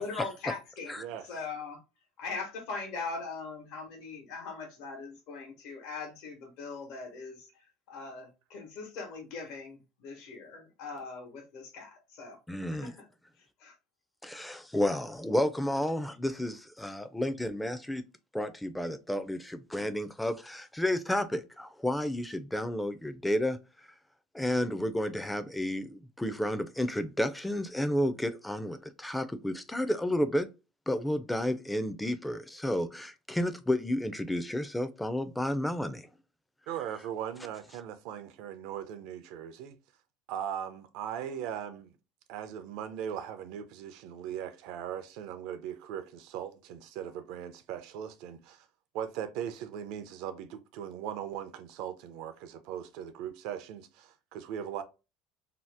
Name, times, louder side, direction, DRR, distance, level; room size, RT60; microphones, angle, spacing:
voice 1, 0.0-1.8 2.2-12.4 12.7-13.1 13.4-13.8, left 4 dB, 70° left, 1.1 m, -41 dB
voice 2, 1.0-1.3 36.7-39.8 40.3-41.9 42.3-48.7 48.9-54.8, right 9 dB, 70° right, 0.5 m, -39 dB
voice 3, 12.5-12.9 14.2-18.0 18.3-23.6 24.3-30.5 30.9-36.1, left 1 dB, 5° left, 0.4 m, -31 dB
2.8 x 2.0 x 3.3 m
supercardioid pair, 105°, 0 cm